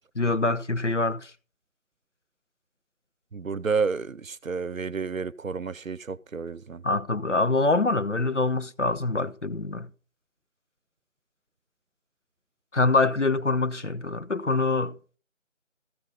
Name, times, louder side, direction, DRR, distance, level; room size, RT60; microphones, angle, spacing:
voice 1, 0.2-1.3 6.8-9.9 12.7-14.9, left 3 dB, 65° left, 0.8 m, -25 dB
voice 2, 3.3-6.8, right 5 dB, 85° right, 0.7 m, -30 dB
14.0 x 5.2 x 5.6 m
figure-of-eight pair, 175°, 39 cm